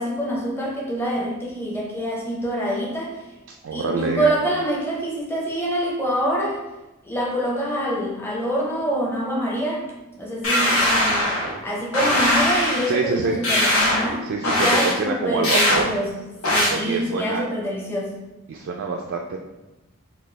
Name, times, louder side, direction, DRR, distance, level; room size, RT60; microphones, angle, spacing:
voice 1, 0.0-3.1 3.7-6.6 7.0-9.8 10.1-11.3 11.6-16.2 16.5-18.2, equal, 10° left, -4 dB, 0.6 m, -25 dB
voice 2, 3.6-4.3 12.9-13.4 14.2-15.9 16.7-17.4 18.5-19.4, right 4 dB, 65° right, 1 dB, 0.3 m, -26 dB
sound 1, 10.4-11.5 11.9-12.9 13.4-14.1 14.4-14.9 15.4-15.8 16.4-16.7, left 1 dB, 85° left, 1.0 m, -20 dB
4.1 x 2.3 x 3.2 m, 1.0 s
head